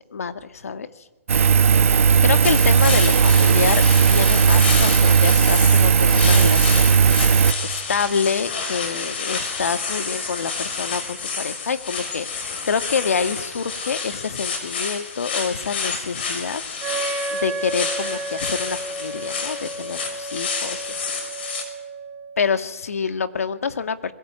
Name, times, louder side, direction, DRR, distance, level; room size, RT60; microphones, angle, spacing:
voice 1, 0.1-0.9 2.2-7.0 7.6-21.1 22.4-24.1, left 6 dB, 85° left, 10 dB, 2.1 m, -27 dB
Engine, 1.3-7.5, right 6 dB, 65° right, 1.2 m, -16 dB
sound 1, 2.4-21.6, left 5 dB, 45° left, 5.6 m, -29 dB
Wind instrument woodwind instrument, 16.8-22.4, right 3 dB, 20° right, 4.1 m, -32 dB
29.0 x 21.5 x 9.0 m, 1.1 s
hypercardioid pair, 170°, 8 cm